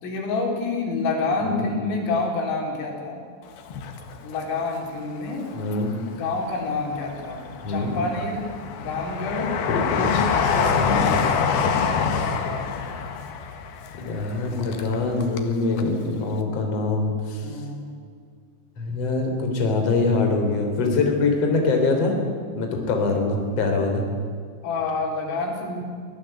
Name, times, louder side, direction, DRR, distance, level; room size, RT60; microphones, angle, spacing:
voice 1, 0.0-3.2 4.2-5.5 6.1-8.5 8.8-9.5 9.9-10.3 10.5-11.2 17.4-17.9 24.6-25.8, left 3 dB, 90° left, 1 dB, 6.5 m, -28 dB
Train, 3.6-4.8 5.3-6.2 6.8-15.5 15.8-15.9, left 6 dB, 60° left, 3.2 m, -26 dB
voice 2, 5.5-5.9 7.6-7.9 9.7-10.1 10.8-11.1 12.0-12.1 14.0-17.5 18.8-22.2 22.5-24.0, left 3 dB, 35° left, 3 dB, 4.2 m, -24 dB
25.0 x 18.0 x 9.1 m, 2.1 s
omnidirectional pair, 5.7 m